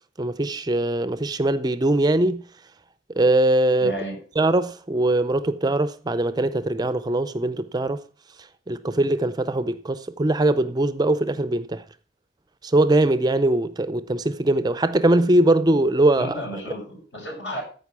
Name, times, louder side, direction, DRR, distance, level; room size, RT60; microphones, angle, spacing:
voice 1, 0.2-2.4 3.2-3.9 4.4-8.0 8.7-11.8 12.6-16.3, right 1 dB, 20° right, 0.4 m, -21 dB
voice 2, 3.8-4.2 16.2-17.6, equal, 75° left, 6.9 m, -32 dB
14.0 x 5.3 x 6.0 m
head